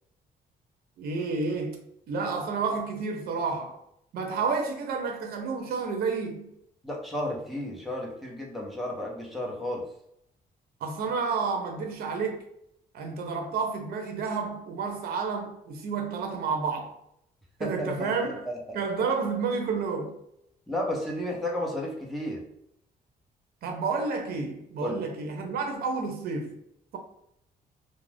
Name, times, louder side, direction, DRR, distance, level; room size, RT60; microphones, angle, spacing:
voice 1, 1.0-1.8 2.1-3.8 4.1-6.5 10.8-12.4 12.9-17.0 17.6-18.5 18.7-20.2 23.6-26.6, right 4 dB, 75° right, 0.6 m, -30 dB
voice 2, 6.8-9.8 17.6-18.3 20.7-22.4 24.8-25.0, left 1 dB, ahead, 0.8 m, -32 dB
2.4 x 2.0 x 3.3 m
cardioid pair, 110°, 16 cm